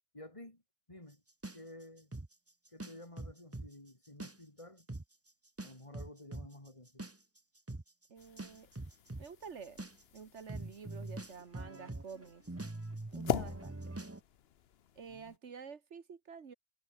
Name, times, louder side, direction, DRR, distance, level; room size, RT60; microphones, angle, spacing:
voice 1, 0.1-0.6 0.9-1.2 1.5-2.1 2.7-4.9 5.6-7.1 15.1-15.4, left 1 dB, 30° left, 3.3 m, -52 dB
sound 1, 1.4-3.7 4.1-4.6 4.9-5.0 5.6-14.2, right 2 dB, 15° right, 0.9 m, -43 dB
voice 2, 8.1-8.7 9.2-9.8 10.1-12.4 13.1-13.9 15.0-16.5, right 6 dB, 80° right, 1.8 m, -49 dB
sound 2, 8.2-15.4, left 9 dB, 65° left, 1.0 m, -43 dB
omnidirectional pair, 1.2 m